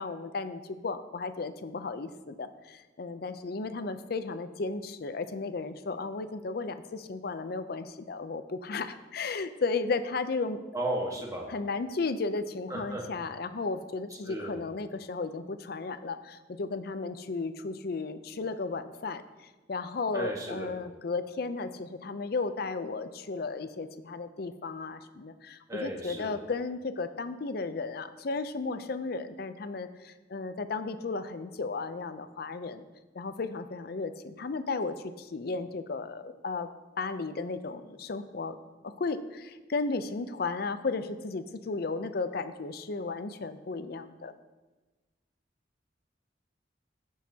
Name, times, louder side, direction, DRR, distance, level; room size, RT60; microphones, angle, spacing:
voice 1, 0.0-10.6 11.5-19.2 19.7-32.9 33.1-36.7 37.0-38.6 38.8-44.3, left 3 dB, 55° left, 11 dB, 0.5 m, -34 dB
voice 2, 10.7-11.5 12.7-13.0 14.2-14.6 20.1-20.7 25.7-26.4, right 1 dB, 20° right, -1 dB, 1.3 m, -34 dB
16.0 x 6.4 x 2.8 m, 1.2 s
head